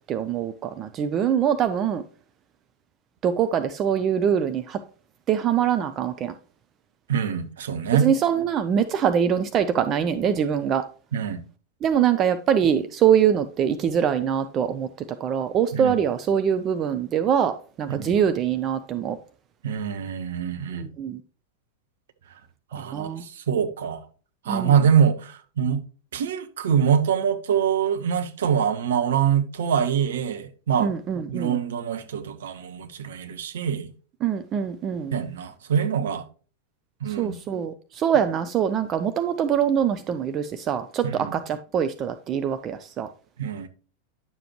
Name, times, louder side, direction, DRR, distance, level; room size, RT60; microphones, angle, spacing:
voice 1, 0.1-2.0 3.2-4.8 5.3-6.3 8.0-10.8 11.8-14.9 15.2-19.2 20.8-21.2 22.9-23.2 24.5-24.7 30.8-31.6 34.2-35.1 37.2-43.1, right 8 dB, 30° right, 0.6 m, -23 dB
voice 2, 7.1-8.1 11.1-11.4 15.7-16.0 17.9-18.1 19.6-20.9 22.7-24.0 24.4-25.8 26.1-30.9 31.3-33.9 35.1-36.2 37.0-37.4 41.0-41.4 43.4-43.7, right 8 dB, 60° right, 1.1 m, -24 dB
10.5 x 6.9 x 3.0 m
figure-of-eight pair, 90°, 0 cm